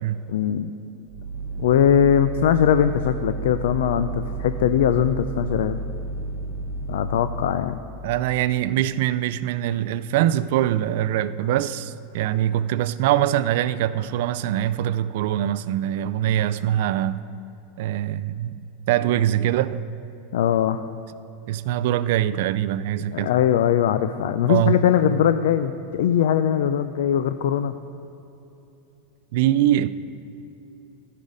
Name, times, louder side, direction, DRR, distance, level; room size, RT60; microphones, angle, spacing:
voice 1, 0.3-0.7 1.6-5.8 6.9-7.8 20.3-20.9 23.1-27.7, left 9 dB, 75° left, 0.3 m, -21 dB
sound 1, 1.1-7.6, right 3 dB, 25° right, 2.3 m, -31 dB
voice 2, 8.0-17.2 17.8-18.6 18.9-19.8 21.5-23.3 24.5-24.8 29.3-29.9, right 12 dB, 55° right, 0.3 m, -23 dB
15.5 x 5.5 x 5.0 m
supercardioid pair, 180°, 0 cm